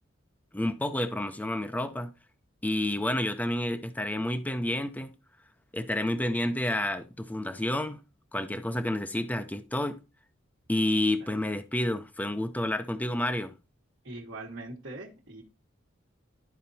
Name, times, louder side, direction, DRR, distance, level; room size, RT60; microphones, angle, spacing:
voice 1, 0.5-2.1 2.6-5.1 5.7-8.0 8.3-10.0 10.7-13.5, left 1 dB, 10° left, 0.5 m, -29 dB
voice 2, 14.0-15.4, right 2 dB, 65° right, 1.4 m, -41 dB
12.0 x 4.3 x 2.7 m
head